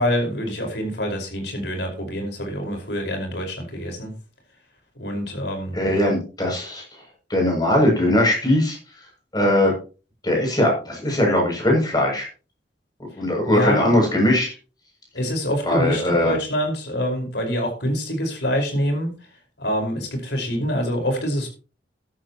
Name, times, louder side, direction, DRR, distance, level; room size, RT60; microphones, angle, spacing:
voice 1, 0.0-4.1 4.9-5.8 13.4-14.0 15.1-19.3 19.6-21.5, equal, 70° left, 3 dB, 4.9 m, -25 dB
voice 2, 5.7-6.8 7.3-8.8 9.3-9.7 10.2-12.3 13.1-14.5 15.6-16.3, left 1 dB, 20° left, 0 dB, 7.2 m, -20 dB
13.5 x 13.0 x 3.0 m, 0.34 s
head